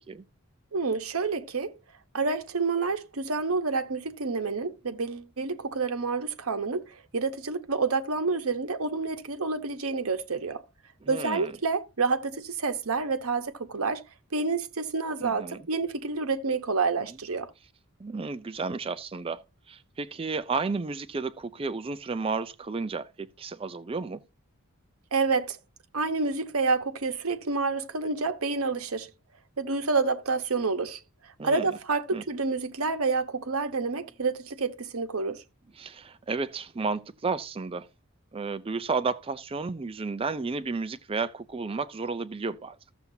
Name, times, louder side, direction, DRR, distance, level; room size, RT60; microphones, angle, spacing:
voice 1, 0.7-1.7 2.1-10.6 11.1-14.0 14.3-17.5 25.1-25.6 25.9-29.1 29.6-31.0 31.4-35.4, right 4 dB, 75° right, 0.9 m, -28 dB
voice 2, 11.0-11.5 15.2-15.7 18.0-19.4 19.7-24.2 31.4-31.7 32.1-32.2 35.8-37.9 38.3-42.8, right 4 dB, 25° right, 0.4 m, -32 dB
14.0 x 7.0 x 2.7 m
head